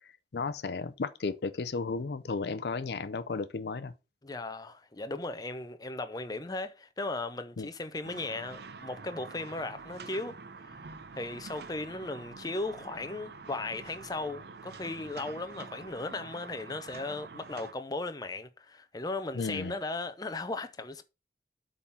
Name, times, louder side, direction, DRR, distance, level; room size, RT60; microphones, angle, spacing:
voice 1, 0.3-3.9 7.6-7.7 19.3-19.8, left 4 dB, 65° left, 0.5 m, -34 dB
voice 2, 4.2-10.4 10.6-10.8 11.1-21.0, left 2 dB, 20° left, 0.6 m, -37 dB
sound 1, 8.0-17.7, right 4 dB, 65° right, 0.7 m, -46 dB
8.2 x 3.7 x 5.7 m
head